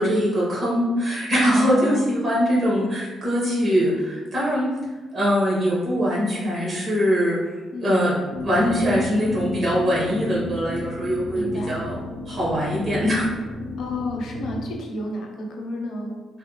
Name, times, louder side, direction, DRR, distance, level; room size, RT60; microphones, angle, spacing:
voice 1, 0.0-4.8 5.1-7.4 7.8-8.1 8.4-12.0 12.3-13.3, equal, 50° right, -7 dB, 1.3 m, -22 dB
voice 2, 1.5-2.1 7.7-7.9 11.3-11.8 13.8-16.2, left 1 dB, 70° left, 0 dB, 0.6 m, -31 dB
sound 1, 8.3-14.7, left 2 dB, 35° right, 1.2 m, -34 dB
3.1 x 2.0 x 3.0 m, 1.3 s
cardioid pair, 90°, 0 cm